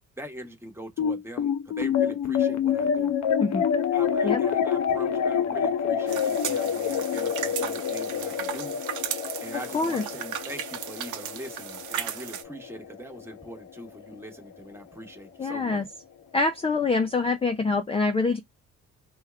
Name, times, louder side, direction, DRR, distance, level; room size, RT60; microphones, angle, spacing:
voice 1, 0.2-3.1 3.9-8.8 9.4-15.9, right 1 dB, 10° right, 1.1 m, -42 dB
sound 1, 1.0-13.6, left 8 dB, 65° left, 0.7 m, -27 dB
sound 2, 6.1-12.4, right 10 dB, 75° right, 0.7 m, -36 dB
voice 2, 9.7-10.0 15.4-15.8 16.3-18.4, left 3 dB, 20° left, 0.5 m, -25 dB
3.3 x 2.3 x 3.3 m
cardioid pair, 90°, 30 cm